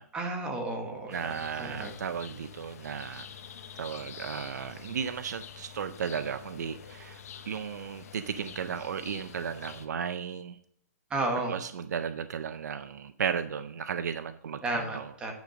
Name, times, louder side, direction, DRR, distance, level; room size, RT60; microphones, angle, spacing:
voice 1, 0.1-1.9 11.1-11.5 14.6-15.3, right 2 dB, 10° right, 3 dB, 1.4 m, -33 dB
sound 1, 1.1-9.9, left 8 dB, 60° left, 1.0 m, -47 dB
voice 2, 1.1-3.3 3.8-10.6 11.5-15.1, right 7 dB, 80° right, 11 dB, 0.5 m, -35 dB
9.3 x 5.1 x 5.1 m, 0.71 s
hypercardioid pair, 155°, 9 cm